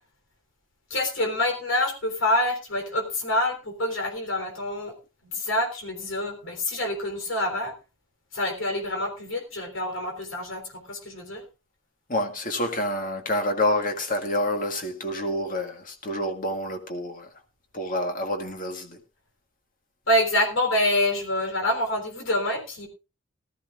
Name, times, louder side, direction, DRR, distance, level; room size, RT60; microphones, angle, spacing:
voice 1, 0.9-4.9 5.2-7.7 8.3-11.4 20.1-22.9, left 1 dB, 80° left, 3.6 m, -26 dB
voice 2, 12.1-17.3 17.7-19.0, left 1 dB, 45° left, 1.9 m, -28 dB
19.0 x 13.0 x 2.5 m
head